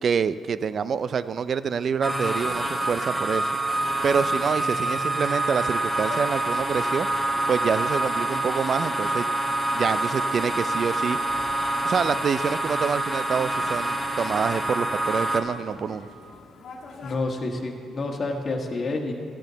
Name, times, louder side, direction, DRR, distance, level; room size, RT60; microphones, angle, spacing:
voice 1, 0.0-3.5 4.0-7.1 7.5-9.3 9.7-11.2 11.8-16.1, right 6 dB, 50° right, 15 dB, 0.4 m, -26 dB
sound 1, 2.0-15.4, right 1 dB, 5° right, 1.0 m, -26 dB
sound 2, 5.9-17.1, left 4 dB, 65° left, 1.4 m, -46 dB
voice 2, 17.0-19.1, left 2 dB, 40° left, 3 dB, 1.4 m, -29 dB
14.0 x 11.5 x 4.0 m, 2.3 s
cardioid pair, 90°, 0 cm